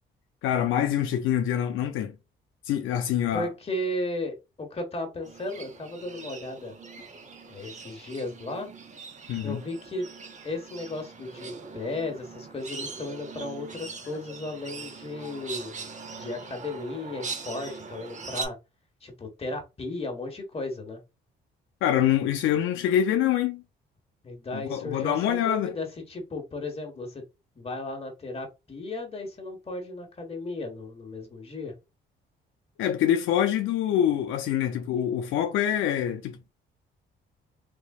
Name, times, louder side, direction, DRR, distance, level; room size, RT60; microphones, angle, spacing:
voice 1, 0.4-2.1 2.7-3.5 9.3-9.6 15.2-15.3 21.8-23.6 24.5-25.7 32.8-36.4, left 10 dB, 85° left, 0.5 m, -25 dB
voice 2, 3.3-6.8 7.5-8.7 9.4-10.1 10.4-15.8 16.1-18.6 19.0-21.0 24.2-27.2 27.5-31.7, left 2 dB, 30° left, 1.3 m, -35 dB
sound 1, 5.2-18.5, right 4 dB, 40° right, 0.8 m, -41 dB
3.6 x 3.1 x 2.4 m
cardioid pair, 90°, 20 cm